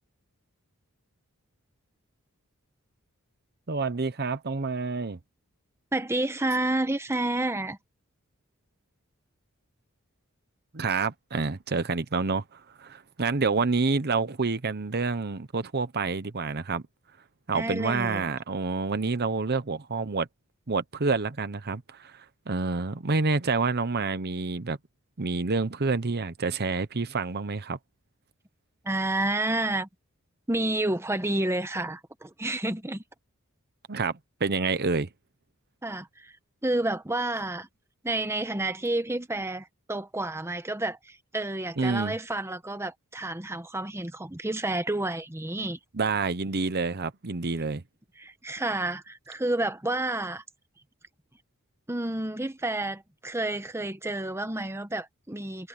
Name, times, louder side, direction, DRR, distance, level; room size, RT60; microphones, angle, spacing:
voice 1, 3.7-5.2 10.7-16.8 17.5-20.3 20.7-24.8 25.2-27.8 33.9-35.1 41.8-42.2 45.9-47.8, right 4 dB, 50° right, 1.0 m, -28 dB
voice 2, 5.9-7.8 17.5-18.3 28.8-29.9 30.5-33.0 35.8-36.4 36.6-37.7 38.0-45.8 48.2-50.4 51.9-55.7, right 2 dB, 10° right, 1.1 m, -30 dB
head